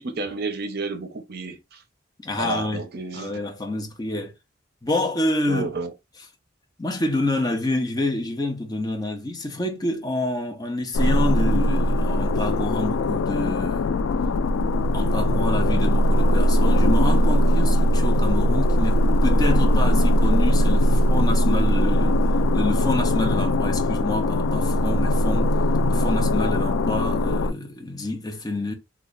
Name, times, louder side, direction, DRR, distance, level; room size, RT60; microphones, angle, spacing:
voice 1, 0.0-1.6 2.4-3.4 5.5-5.9, right 3 dB, 55° right, 0.7 m, -31 dB
voice 2, 2.2-2.9 3.1-4.3 4.8-5.7 6.8-13.9 14.9-22.2 22.5-25.5 25.9-28.7, left 2 dB, 20° left, 0.6 m, -27 dB
sound 1, 10.9-27.5, equal, 85° left, 0.3 m, -20 dB
3.0 x 2.3 x 3.7 m
head